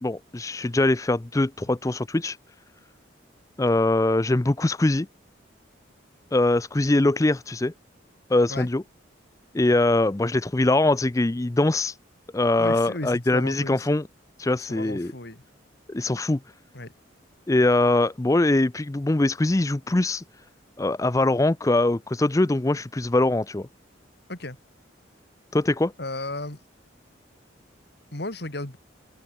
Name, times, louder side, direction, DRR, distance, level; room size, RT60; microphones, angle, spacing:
voice 1, 0.0-2.4 3.6-5.1 6.3-7.7 8.3-8.8 9.5-11.9 12.3-14.0 14.4-15.1 15.9-16.4 17.5-20.2 20.8-23.7 25.5-25.9, left 2 dB, 15° left, 0.4 m, -22 dB
voice 2, 12.6-13.9 14.5-15.4 16.7-16.9 24.3-24.6 26.0-26.6 28.1-28.8, left 2 dB, 55° left, 2.7 m, -34 dB
open air
head